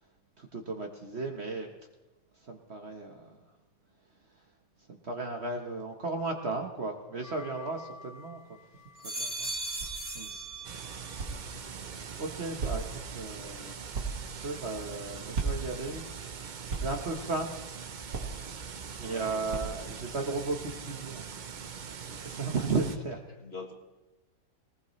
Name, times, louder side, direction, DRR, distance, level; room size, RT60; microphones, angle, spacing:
voice 1, 0.4-1.7 2.4-3.4 4.9-8.4 9.0-9.5 10.1-10.3 11.5-11.8 12.2-12.8 13.1-13.8 14.1-16.2 16.8-17.5 18.5-21.2 21.5-21.8 22.1-23.2, right 3 dB, 45° right, 3 dB, 1.3 m, -35 dB
sound 1, 7.2-8.4 8.8-11.2 11.6-12.2, right 2 dB, 25° right, 1.5 m, -39 dB
sound 2, 9.3-20.2, right 4 dB, 90° right, 2.6 m, -40 dB
sound 3, 10.6-23.0, right 6 dB, 60° right, 0.4 m, -42 dB
voice 2, 19.0-19.7 23.4-23.7, left 3 dB, 40° left, 2 dB, 1.9 m, -45 dB
20.0 x 19.0 x 3.2 m, 1.0 s
omnidirectional pair, 1.7 m